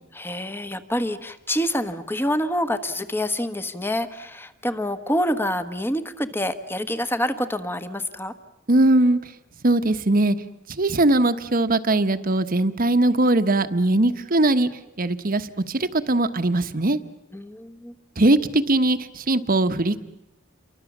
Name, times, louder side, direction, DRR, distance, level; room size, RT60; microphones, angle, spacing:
voice 1, 0.1-8.3 17.3-17.9, equal, 10° left, 10 dB, 1.3 m, -27 dB
voice 2, 8.7-9.2 9.6-10.4 10.8-14.7 15.0-17.0 18.2-20.0, right 2 dB, 45° right, 10 dB, 1.2 m, -20 dB
29.0 x 24.0 x 7.3 m, 0.90 s
head